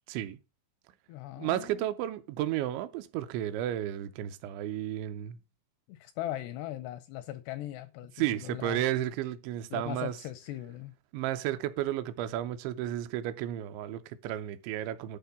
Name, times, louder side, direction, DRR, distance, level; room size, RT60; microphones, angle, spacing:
voice 1, 0.1-0.4 1.4-5.4 8.2-10.1 11.1-15.2, right 12 dB, 80° right, 2.9 m, -33 dB
voice 2, 1.1-1.9 5.9-8.8 9.7-10.9, left 13 dB, 85° left, 2.4 m, -39 dB
11.0 x 3.8 x 6.9 m
omnidirectional pair, 5.4 m